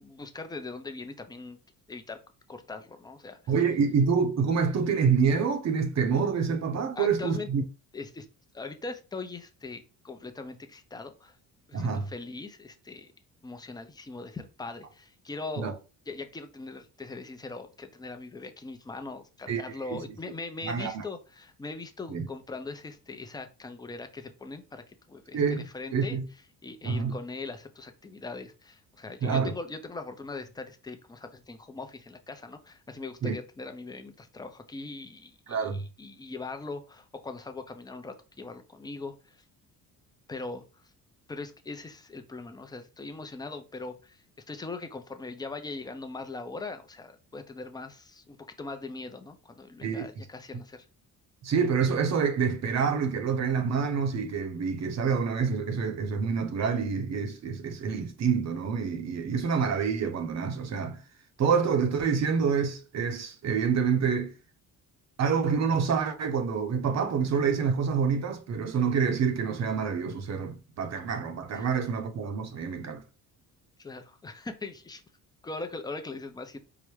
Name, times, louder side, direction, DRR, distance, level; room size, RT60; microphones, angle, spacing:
voice 1, 0.0-1.6 1.9-2.2 2.5-3.5 7.0-7.5 7.9-8.3 8.5-11.4 11.7-13.1 13.4-15.8 16.1-26.2 26.6-39.4 40.3-40.6 41.3-50.9 71.5-71.8 73.8-75.0 75.4-76.6, left 3 dB, 10° left, 0.5 m, -40 dB
voice 2, 3.5-7.6 11.7-12.1 15.6-15.7 19.5-19.6 19.9-20.0 20.6-21.0 22.1-22.3 25.3-25.7 25.9-26.2 26.8-27.2 29.2-29.5 33.2-33.3 35.5-35.8 49.8-50.1 51.4-61.0 61.4-64.3 65.2-73.0, right 6 dB, 45° right, 0.7 m, -27 dB
4.8 x 2.1 x 3.1 m
cardioid pair, 110°, 37 cm